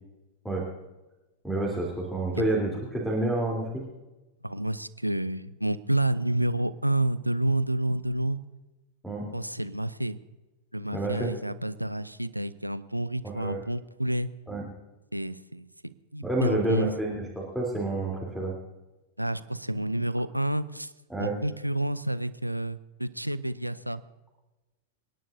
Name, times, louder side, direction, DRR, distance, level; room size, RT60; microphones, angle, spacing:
voice 1, 1.4-3.8 9.0-9.2 10.9-11.3 13.4-13.6 14.5-14.6 16.2-18.5 21.1-21.3, right 2 dB, 5° left, -3 dB, 3.4 m, -29 dB
voice 2, 4.4-8.4 9.3-10.2 10.7-14.3 15.1-15.7 16.1-16.9 19.2-20.9 21.2-24.0, right 1 dB, 90° right, 15 dB, 0.5 m, -29 dB
28.5 x 11.0 x 2.7 m, 1.1 s
figure-of-eight pair, 90°, 0 cm